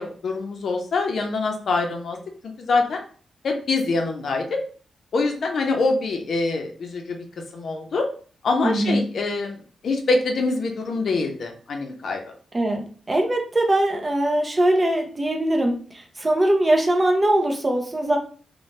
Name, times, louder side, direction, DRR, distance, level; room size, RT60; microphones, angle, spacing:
voice 1, 0.0-2.2 2.6-3.0 3.4-4.6 5.1-7.2 7.5-8.1 8.4-12.2, left 3 dB, 60° left, 3 dB, 0.5 m, -24 dB
voice 2, 8.6-9.0 12.5-18.2, right 1 dB, 25° right, 2 dB, 0.5 m, -21 dB
2.6 x 2.1 x 3.1 m, 0.42 s
wide cardioid pair, 125°, 0 cm